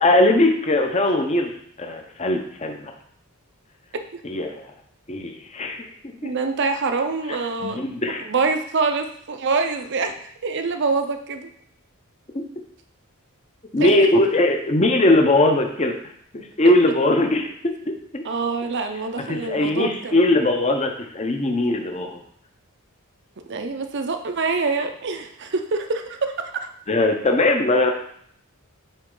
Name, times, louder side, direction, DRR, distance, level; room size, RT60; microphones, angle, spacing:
voice 1, 0.0-1.5 1.8-2.9 4.2-4.6 5.1-6.3 7.6-8.2 12.3-12.4 13.7-15.9 16.3-18.2 19.3-22.2 26.9-27.9, left 1 dB, 30° left, 4 dB, 0.7 m, -20 dB
voice 2, 6.2-7.8 8.2-10.1 10.4-11.5 13.8-13.9 18.2-20.2 23.5-26.7, right 4 dB, 50° right, 6 dB, 0.6 m, -25 dB
8.2 x 3.5 x 3.8 m, 0.65 s
head